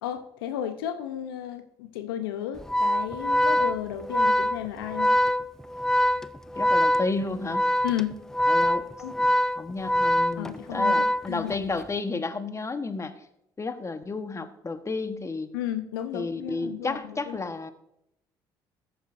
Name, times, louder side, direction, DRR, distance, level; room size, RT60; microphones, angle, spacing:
voice 1, 0.0-5.1 7.8-8.2 9.0-9.2 10.4-11.5 15.5-17.4, left 11 dB, 85° left, 9 dB, 0.7 m, -33 dB
Organ, 2.6-11.8, equal, 5° left, 0.4 m, -24 dB
voice 2, 6.5-7.7 8.5-8.8 9.2-9.3 9.6-13.1 13.6-15.5 16.1-17.7, left 3 dB, 25° left, 10 dB, 1.2 m, -32 dB
13.5 x 9.1 x 2.6 m, 0.80 s
hypercardioid pair, 55°, 12 cm